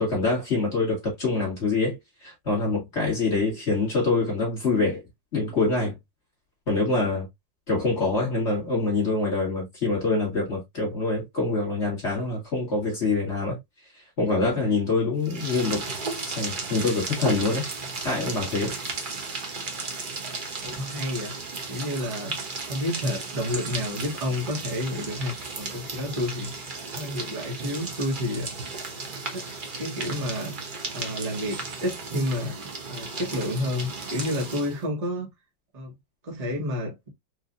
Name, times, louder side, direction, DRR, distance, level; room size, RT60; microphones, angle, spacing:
voice 1, 0.0-5.0 5.3-6.0 6.7-7.3 7.7-13.6 14.2-15.8 16.3-17.6 18.0-18.7, left 3 dB, 35° left, 1.7 m, -25 dB
sound 1, 15.2-34.8, right 4 dB, 50° right, 0.6 m, -35 dB
voice 2, 20.6-21.3 21.7-22.3 22.6-26.7 26.9-28.5 29.3-29.5 29.8-30.5 30.9-35.3 35.7-35.9 36.2-37.1, left 1 dB, 25° right, 1.1 m, -30 dB
4.6 x 2.5 x 2.5 m
omnidirectional pair, 2.0 m